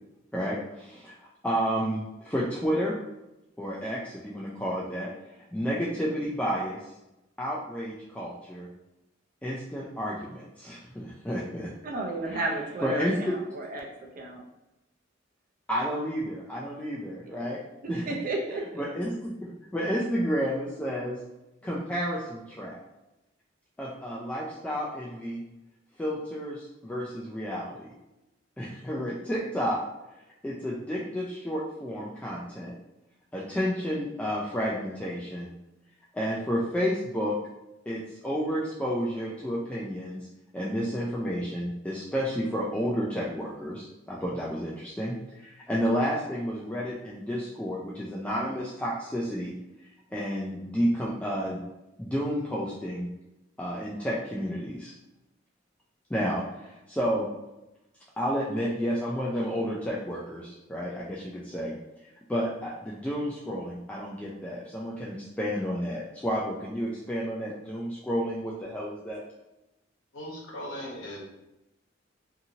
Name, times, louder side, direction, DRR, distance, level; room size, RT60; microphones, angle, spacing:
voice 1, 0.3-1.2 1.4-2.9 3.6-5.1 5.5-6.8 7.4-8.7 9.4-11.7 12.3-12.4 12.8-13.3 15.7-17.6 17.9-18.0 18.7-21.2 21.6-22.8 23.8-25.4 26.0-27.9 28.6-29.8 30.4-32.7 33.3-35.5 36.1-37.3 37.9-40.3 40.5-49.5 50.1-51.6 52.0-53.1 53.6-54.9 56.1-57.3 58.2-69.2, equal, 5° left, -6 dB, 0.3 m, -31 dB
voice 2, 11.8-13.9 14.2-14.4 17.3-17.6 17.8-18.6, right 2 dB, 45° right, 0 dB, 0.6 m, -33 dB
voice 3, 70.1-71.2, equal, 75° left, -4 dB, 1.0 m, -38 dB
2.7 x 2.6 x 2.7 m, 0.95 s
head